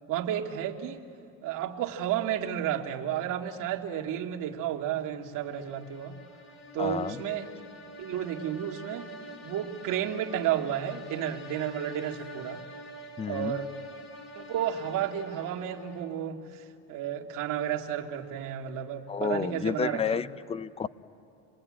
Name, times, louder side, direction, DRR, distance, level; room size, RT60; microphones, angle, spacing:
voice 1, 0.1-1.0 1.4-6.2 6.7-7.5 8.0-9.1 9.4-12.6 13.3-13.7 14.4-20.2, right 10 dB, 60° right, 0 dB, 2.2 m, -32 dB
sound 1, 5.3-16.2, left 1 dB, 45° left, 3.8 m, -47 dB
voice 2, 6.8-7.2 13.2-13.6 19.1-20.9, left 6 dB, 15° left, 17 dB, 0.6 m, -30 dB
27.5 x 20.5 x 8.7 m, 2.6 s
supercardioid pair, 110°, 36 cm